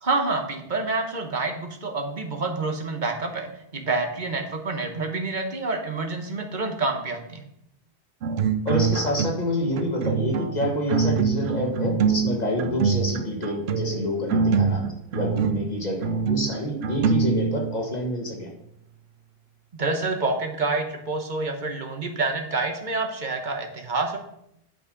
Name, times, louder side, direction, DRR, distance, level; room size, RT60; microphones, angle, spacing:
voice 1, 0.0-7.4 19.8-24.2, right 3 dB, 50° right, 4 dB, 1.4 m, -28 dB
sound 1, 8.2-9.5 9.8-17.9, right 5 dB, 80° right, 0.9 m, -24 dB
voice 2, 8.7-18.5, equal, 40° left, 0 dB, 1.9 m, -28 dB
8.7 x 5.9 x 5.3 m, 0.77 s
omnidirectional pair, 1.1 m